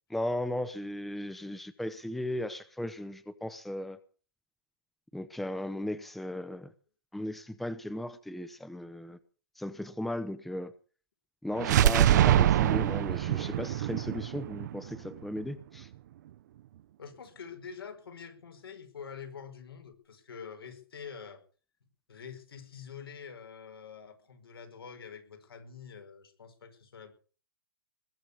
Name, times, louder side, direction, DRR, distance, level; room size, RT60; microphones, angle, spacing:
voice 1, 0.1-4.0 5.1-6.7 7.1-9.2 9.6-10.7 11.4-15.9, left 1 dB, ahead, 0.7 m, -36 dB
sound 1, 11.6-15.4, right 12 dB, 50° right, 0.7 m, -25 dB
voice 2, 17.0-21.4 22.1-27.1, left 6 dB, 90° left, 5.2 m, -46 dB
20.5 x 7.7 x 8.4 m
hypercardioid pair, 155°, 12 cm